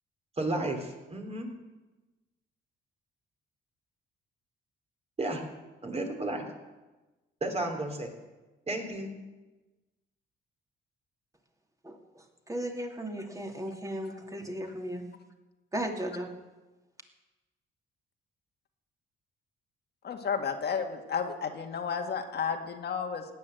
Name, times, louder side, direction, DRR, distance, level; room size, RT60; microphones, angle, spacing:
voice 1, 0.4-1.5 5.2-5.4 5.8-6.5 7.4-8.1 8.7-9.1, right 2 dB, 30° right, 3 dB, 3.6 m, -32 dB
voice 2, 11.8-15.1 15.7-16.3, right 1 dB, 15° right, 3 dB, 2.8 m, -36 dB
voice 3, 20.0-23.3, left 6 dB, 55° left, 4 dB, 1.9 m, -32 dB
17.5 x 9.5 x 7.9 m, 1.1 s
cardioid pair, 90°, 20 cm